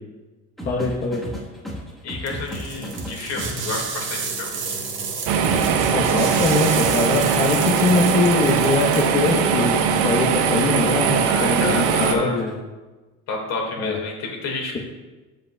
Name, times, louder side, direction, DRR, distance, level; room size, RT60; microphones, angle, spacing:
voice 1, 0.6-1.3 5.9-12.5 13.8-14.0, left 3 dB, 30° left, -2 dB, 1.0 m, -22 dB
sound 1, 0.6-3.8 5.5-7.0 9.4-10.4 12.4-12.6, equal, ahead, 1.3 m, -34 dB
voice 2, 2.0-4.5 11.2-12.4 13.3-14.8, left 3 dB, 55° left, 1 dB, 2.0 m, -29 dB
sound 2, 2.3-9.5, right 5 dB, 40° right, 1.4 m, -31 dB
sound 3, 5.3-12.1, right 6 dB, 80° right, 0.9 m, -20 dB
15.0 x 5.3 x 2.3 m, 1.2 s
cardioid pair, 125°, 31 cm